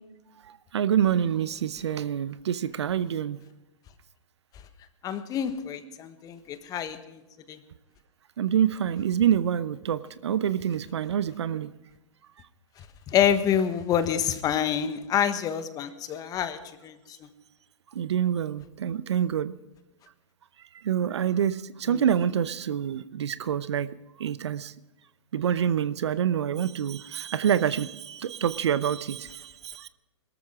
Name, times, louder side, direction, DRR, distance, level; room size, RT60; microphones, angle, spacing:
voice 1, 0.4-3.4 8.4-11.7 17.9-19.6 20.8-23.9 24.2-24.7 25.3-29.9, right 9 dB, 65° right, 16 dB, 0.8 m, -26 dB
voice 2, 5.0-7.2 7.5-7.6 13.1-17.3 21.9-22.0, left 9 dB, 25° left, 10 dB, 1.4 m, -27 dB
22.0 x 13.5 x 3.7 m, 1.0 s
figure-of-eight pair, 120°, 16 cm